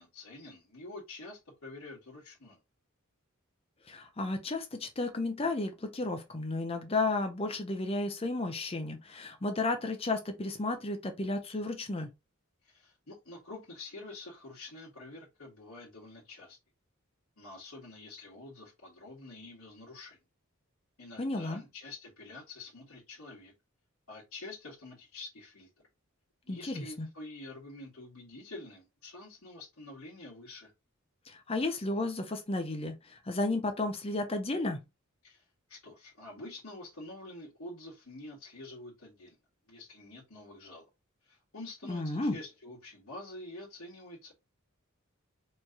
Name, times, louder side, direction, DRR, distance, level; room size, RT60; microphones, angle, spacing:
voice 1, 0.0-2.6 12.6-16.6 17.4-20.2 21.0-23.5 24.1-25.7 26.5-30.7 35.2-39.4 39.7-40.9 41.3-44.3, left 2 dB, 75° left, 1.7 m, -47 dB
voice 2, 3.9-12.1 21.2-21.6 26.5-27.1 31.3-34.8 41.8-42.4, left 2 dB, 25° left, 0.6 m, -33 dB
4.5 x 3.1 x 2.8 m
head